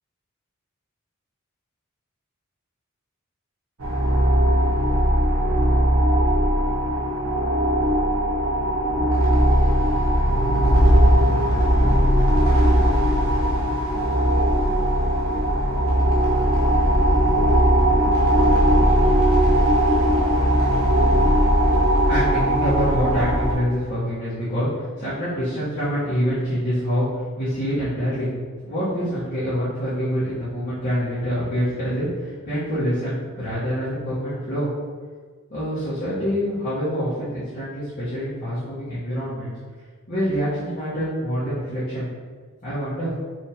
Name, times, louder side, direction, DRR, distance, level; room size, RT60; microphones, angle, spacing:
sound 1, 3.8-23.5, equal, 80° right, 1.2 m, -18 dB
voice 1, 22.1-24.7 25.0-27.1 27.4-28.3 28.6-32.1 32.4-34.7 35.5-39.5 40.1-42.1 42.6-43.1, equal, 40° left, -14 dB, 1.5 m, -26 dB
4.7 x 3.6 x 3.0 m, 1.5 s
head